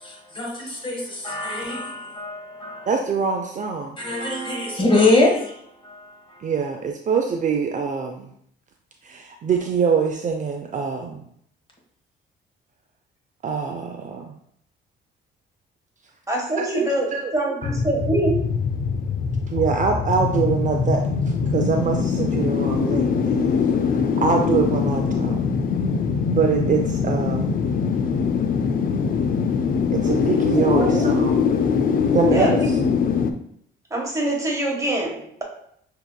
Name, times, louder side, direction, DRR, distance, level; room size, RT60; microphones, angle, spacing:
voice 1, 0.0-2.9 4.0-6.4, left 2 dB, 25° left, 1.4 m, -24 dB
voice 2, 2.9-3.9 6.4-6.8 7.1-8.3 9.0-11.2 13.4-14.3 16.6-17.3 17.6-17.7 19.5-21.0 21.5-23.5 23.9-25.4 26.3-27.5 29.9-31.4 32.1-32.8, right 5 dB, 40° right, 0.4 m, -24 dB
voice 3, 16.3-18.4 30.4-31.2 32.3-32.9 33.9-35.4, right 1 dB, 15° right, 1.3 m, -25 dB
sound 1, 17.6-33.3, left 6 dB, 45° left, 0.4 m, -22 dB
6.0 x 2.8 x 2.2 m
cardioid pair, 90°, 20 cm